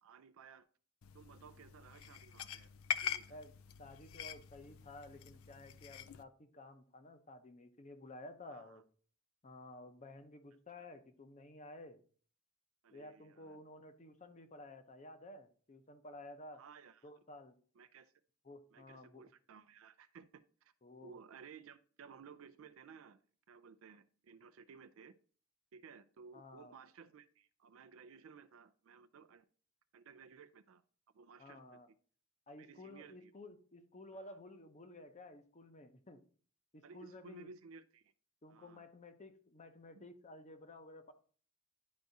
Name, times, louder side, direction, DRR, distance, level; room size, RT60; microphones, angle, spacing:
voice 1, 0.0-0.7 1.1-2.7 3.0-3.4 8.5-8.8 10.8-10.9 12.8-13.6 16.5-17.1 17.8-18.1 18.7-20.7 21.0-23.2 23.5-25.1 25.7-29.5 29.9-30.8 31.1-31.8 32.5-33.3 34.3-34.4 36.8-38.1 38.5-38.8 39.9-40.0, right 5 dB, 65° right, 9 dB, 0.4 m, -57 dB
sound 1, 1.0-6.2, left 8 dB, 70° left, 0.4 m, -44 dB
voice 2, 3.8-8.8 9.4-12.0 12.9-16.6 17.0-17.5 18.4-19.3 20.8-21.2 26.3-26.7 31.4-31.9 32.5-36.2 36.7-37.5 38.4-41.1, left 1 dB, 35° left, 9 dB, 0.7 m, -53 dB
10.5 x 4.7 x 2.7 m, 0.44 s
head